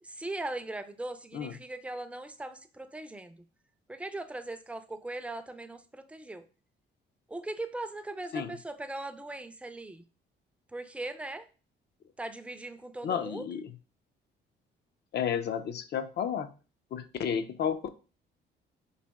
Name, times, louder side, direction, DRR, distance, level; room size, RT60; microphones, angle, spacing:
voice 1, 0.0-3.4 3.9-6.4 7.3-10.0 10.7-11.5 12.2-13.4, right 2 dB, 5° right, 9 dB, 0.4 m, -39 dB
voice 2, 13.0-13.6 15.1-16.5 16.9-17.9, left 8 dB, 55° left, 11 dB, 0.5 m, -32 dB
4.1 x 2.8 x 3.4 m, 0.35 s
cardioid pair, 90°, 20 cm